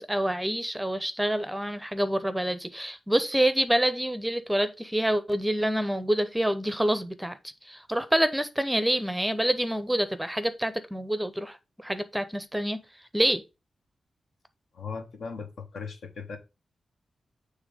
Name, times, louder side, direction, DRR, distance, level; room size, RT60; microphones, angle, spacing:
voice 1, 0.0-7.4 7.7-12.8 13.1-13.4, right 1 dB, 5° right, 0.6 m, -27 dB
voice 2, 14.7-16.4, left 5 dB, 80° left, 1.3 m, -38 dB
7.1 x 3.4 x 4.9 m
wide cardioid pair, 120°, 0 cm